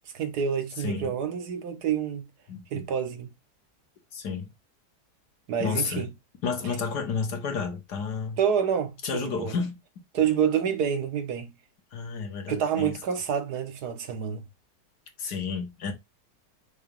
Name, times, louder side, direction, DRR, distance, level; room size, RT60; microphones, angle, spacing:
voice 1, 0.1-2.2 2.7-3.3 5.5-6.1 8.4-9.5 10.1-11.5 12.5-14.4, right 8 dB, 75° right, 1.6 m, -28 dB
voice 2, 0.8-1.2 2.5-2.9 4.1-4.5 5.6-6.1 6.4-8.4 9.0-9.8 11.9-13.0 15.2-15.9, left 5 dB, 85° left, 2.0 m, -31 dB
6.2 x 3.0 x 5.2 m
omnidirectional pair, 1.7 m